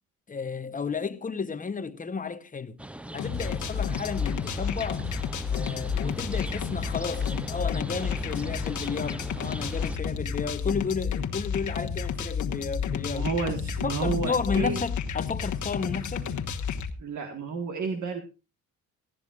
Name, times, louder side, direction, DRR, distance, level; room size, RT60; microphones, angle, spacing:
voice 1, 0.3-2.8 3.1-5.0 5.5-13.3 13.8-16.3, left 5 dB, 25° left, 1.0 m, -32 dB
sound 1, 2.8-10.0, right 1 dB, 5° right, 0.6 m, -41 dB
sound 2, 3.2-16.9, left 6 dB, 60° left, 1.4 m, -31 dB
sound 3, 4.9-12.8, right 2 dB, 30° right, 7.5 m, -56 dB
voice 2, 13.1-14.8 17.0-18.2, right 4 dB, 55° right, 1.7 m, -31 dB
19.0 x 14.0 x 2.5 m
cardioid pair, 100°, 34 cm